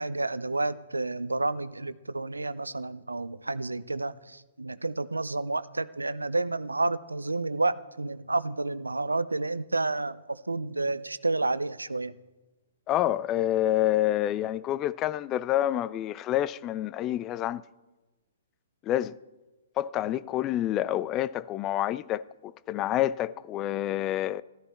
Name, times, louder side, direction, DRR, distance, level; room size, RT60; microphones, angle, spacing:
voice 1, 0.0-12.2, right 2 dB, 85° right, 0.5 m, -30 dB
voice 2, 12.9-17.6 18.8-19.2 19.8-24.4, left 13 dB, 25° left, 0.4 m, -28 dB
14.0 x 13.0 x 4.3 m
figure-of-eight pair, 120°, 0 cm